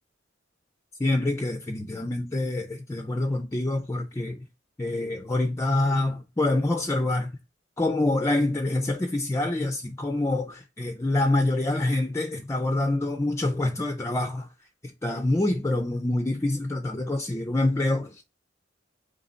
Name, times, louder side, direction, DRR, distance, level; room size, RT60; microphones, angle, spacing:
voice 1, 1.0-4.4 4.8-7.3 7.8-14.5 14.8-18.2, left 2 dB, 15° left, 0.4 m, -26 dB
4.2 x 3.1 x 3.9 m
head